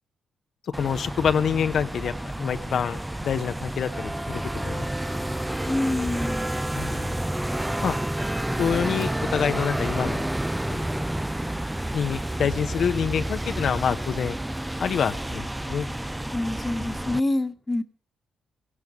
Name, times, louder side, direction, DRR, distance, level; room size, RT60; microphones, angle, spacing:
sound 1, 0.7-17.2, right 1 dB, 10° right, 0.7 m, -30 dB
voice 1, 0.8-5.2 6.7-7.1 7.8-8.0 8.5-10.3 10.7-10.9 11.9-14.4 14.8-15.9, left 7 dB, 65° left, 8 dB, 1.0 m, -27 dB
voice 2, 5.7-6.5 16.3-17.8, left 2 dB, 25° left, 8 dB, 1.6 m, -26 dB
17.0 x 11.5 x 7.0 m, 0.43 s
hypercardioid pair, 45°, 0 cm